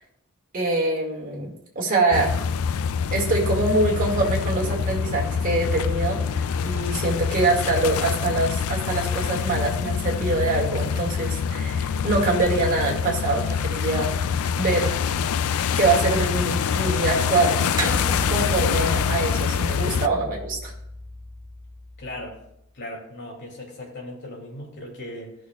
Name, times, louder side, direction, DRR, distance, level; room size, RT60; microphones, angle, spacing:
voice 1, 0.5-2.4 3.1-14.1 14.6-15.0 15.7-17.7 18.3-20.7, right 2 dB, 40° right, -2 dB, 2.1 m, -24 dB
sound 1, 2.1-20.1, left 7 dB, 80° left, 0.4 m, -25 dB
sound 2, 17.8-22.5, equal, 20° right, 1.1 m, -33 dB
voice 2, 22.0-22.4 22.7-25.4, left 1 dB, 55° left, -1 dB, 2.7 m, -37 dB
16.0 x 6.1 x 2.4 m, 0.78 s
head